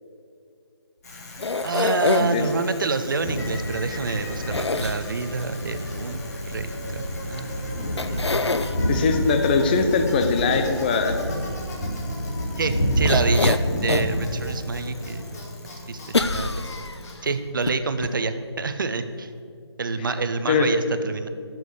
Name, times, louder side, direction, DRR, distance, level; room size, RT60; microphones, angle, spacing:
Bicycle, 1.0-18.1, left 2 dB, 35° left, 2.4 m, -41 dB
sound 1, 1.4-2.5 4.5-5.4 7.4-7.5 8.0-8.8 13.0-14.2 14.7-14.8 16.1-17.1 17.7-17.8 18.0-18.1, left 3 dB, 75° left, 0.6 m, -25 dB
voice 1, 1.6-6.2 6.5-7.8 8.1-8.9 12.6-15.2 15.9-16.9 17.2-19.3 19.8-21.3, right 4 dB, 50° right, 10 dB, 0.8 m, -28 dB
sound 2, 3.2-15.4, equal, 55° left, 3.1 m, -28 dB
voice 2, 8.9-11.2 20.0-20.1 20.5-20.7, left 4 dB, 20° left, 7 dB, 0.7 m, -21 dB
13.0 x 6.3 x 6.6 m, 2.4 s
figure-of-eight pair, 150°, 14 cm